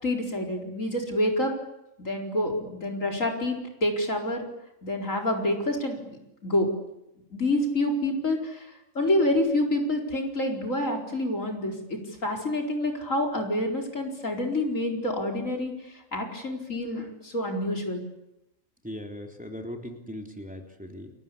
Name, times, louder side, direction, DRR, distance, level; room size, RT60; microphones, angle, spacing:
voice 1, 0.0-1.5 2.0-3.5 3.8-4.4 4.8-6.2 6.4-6.7 7.3-8.7 8.9-18.0, left 1 dB, 75° left, 2 dB, 4.9 m, -27 dB
voice 2, 18.8-21.1, equal, 5° right, 2 dB, 3.4 m, -39 dB
29.5 x 22.5 x 8.6 m, 0.87 s
omnidirectional pair, 1.4 m